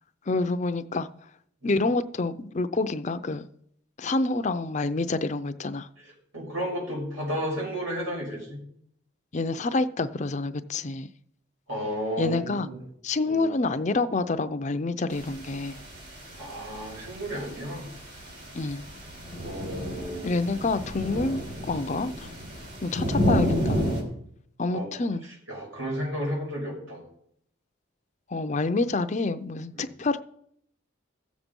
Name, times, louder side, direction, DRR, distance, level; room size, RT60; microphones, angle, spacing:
voice 1, 0.3-1.1 1.6-3.5 4.0-5.9 9.3-11.1 12.2-12.7 13.0-15.7 18.5-18.8 20.2-21.4 21.7-22.3 22.8-23.8 24.6-25.2 28.3-30.2, left 3 dB, 35° left, 11 dB, 0.5 m, -27 dB
voice 2, 6.3-8.6 11.7-12.8 13.3-13.5 16.4-17.9 19.4-20.4 24.7-25.0 25.5-27.0 29.7-29.9, equal, 85° right, -2 dB, 5.9 m, -33 dB
sound 1, 15.1-24.0, equal, 55° right, 3.9 m, -31 dB
15.5 x 7.3 x 5.3 m, 0.71 s
head